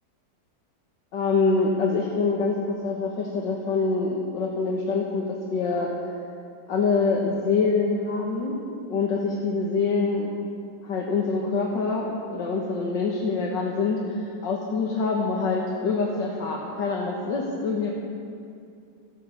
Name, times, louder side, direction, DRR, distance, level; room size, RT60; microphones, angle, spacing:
voice 1, 1.1-5.9 6.7-8.6 8.9-10.3 10.8-17.9, left 4 dB, 85° left, -2 dB, 2.1 m, -25 dB
14.0 x 12.5 x 7.2 m, 2.4 s
omnidirectional pair, 1.9 m